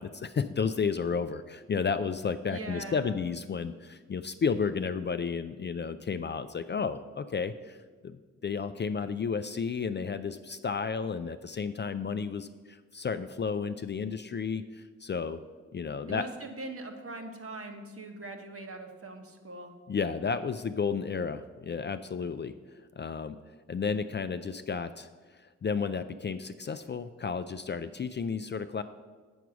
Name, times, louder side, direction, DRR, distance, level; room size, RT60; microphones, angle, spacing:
voice 1, 0.0-7.8 8.0-8.2 8.4-15.4 15.7-16.3 19.9-22.6 23.0-23.4 23.7-25.1 25.6-28.8, left 5 dB, 35° left, 11 dB, 0.4 m, -32 dB
voice 2, 2.5-3.3 16.1-19.7, right 2 dB, 45° right, 4 dB, 1.2 m, -41 dB
8.0 x 4.7 x 6.1 m, 1.4 s
cardioid pair, 50°, 30 cm